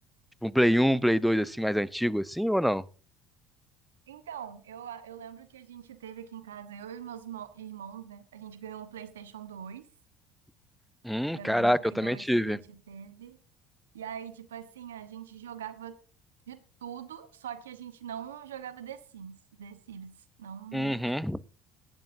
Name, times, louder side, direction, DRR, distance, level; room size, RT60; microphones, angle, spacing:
voice 1, 0.4-2.8 11.0-12.6 20.7-21.4, equal, ahead, 0.6 m, -26 dB
voice 2, 4.1-9.8 11.3-13.4 13.9-16.0 16.5-20.1 20.4-21.0, right 9 dB, 90° right, 1.0 m, -43 dB
17.5 x 12.0 x 2.6 m
hypercardioid pair, 70°, 0 cm